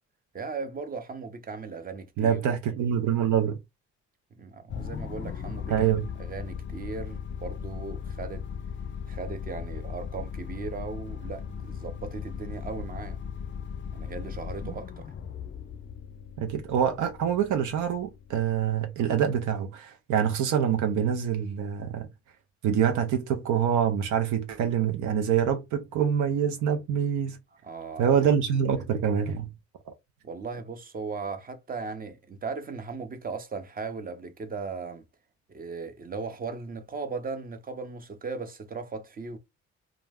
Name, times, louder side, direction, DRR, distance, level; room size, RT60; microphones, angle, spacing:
voice 1, 0.3-2.5 4.4-5.8 6.2-8.4 9.1-13.2 13.9-15.1 27.6-28.2 28.8-29.0 30.2-35.0 35.5-39.4, right 4 dB, 30° right, 0.6 m, -37 dB
voice 2, 2.2-3.6 5.7-6.0 14.6-14.7 16.4-22.1 22.6-27.4 28.0-29.5, right 8 dB, 80° right, 0.5 m, -25 dB
sound 1, 4.7-19.2, left 7 dB, 40° left, 0.4 m, -38 dB
2.3 x 2.0 x 3.4 m
cardioid pair, 90°, 30 cm